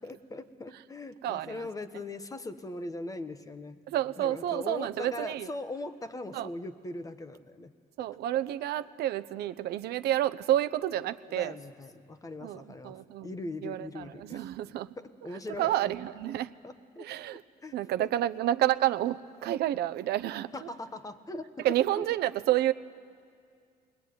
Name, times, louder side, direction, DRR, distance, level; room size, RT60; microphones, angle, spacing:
voice 1, 0.0-3.8 4.2-7.7 11.4-13.0 13.2-14.4 15.0-15.7 16.6-17.1 17.6-18.1 20.5-21.7 22.0-22.1, left 2 dB, 20° left, 10 dB, 1.3 m, -40 dB
voice 2, 1.2-1.7 3.9-5.5 6.3-6.5 8.0-11.6 12.4-14.9 15.6-16.5 17.0-17.4 17.7-20.7 21.6-22.7, right 13 dB, 75° right, 13 dB, 0.8 m, -30 dB
22.0 x 20.5 x 9.5 m, 2.2 s
cardioid pair, 110°, 17 cm